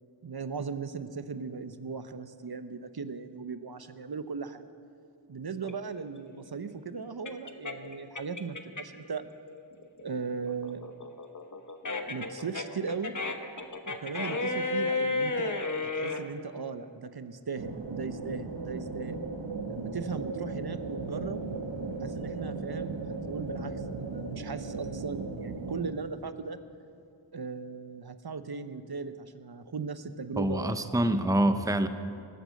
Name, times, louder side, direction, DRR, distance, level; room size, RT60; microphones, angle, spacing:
voice 1, 0.2-4.7 5.3-9.2 10.0-10.8 12.1-13.1 13.9-15.6 16.0-19.2 19.7-21.4 22.0-26.6 27.3-30.8, right 5 dB, 50° right, 11 dB, 0.7 m, -37 dB
sound 1, 5.6-9.1 9.5-16.2, left 3 dB, 40° left, 1.1 m, -33 dB
sound 2, 17.6-25.9, right 3 dB, 70° right, 1.3 m, -37 dB
voice 2, 30.4-31.9, right 1 dB, 5° right, 9 dB, 0.7 m, -26 dB
18.5 x 8.3 x 7.6 m, 2.4 s
wide cardioid pair, 40°, 47 cm